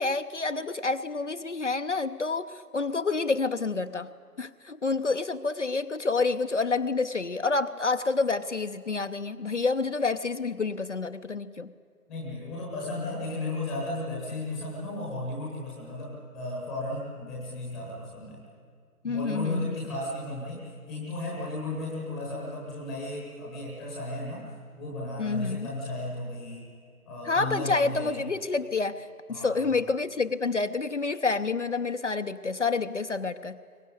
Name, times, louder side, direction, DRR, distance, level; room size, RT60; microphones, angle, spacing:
voice 1, 0.0-4.1 4.4-11.7 19.0-19.8 25.2-25.7 27.2-33.6, left 4 dB, 50° left, 9 dB, 0.8 m, -28 dB
voice 2, 12.1-18.4 19.0-24.5 24.8-26.7 27.1-28.2 29.3-29.7, left 2 dB, ahead, -4 dB, 1.0 m, -34 dB
23.0 x 19.5 x 9.5 m, 2.1 s
figure-of-eight pair, 150°, 46 cm